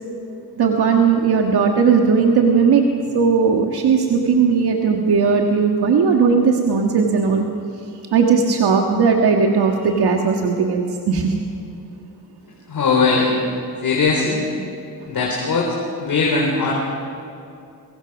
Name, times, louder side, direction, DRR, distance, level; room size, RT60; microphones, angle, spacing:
voice 1, 0.6-2.8 3.1-7.4 8.1-11.4, right 5 dB, 75° right, 2 dB, 1.7 m, -17 dB
voice 2, 12.7-13.6 13.8-14.4 15.1-16.7, left 4 dB, 60° left, -2 dB, 4.0 m, -19 dB
23.5 x 21.5 x 6.1 m, 2.6 s
cardioid pair, 115°, 38 cm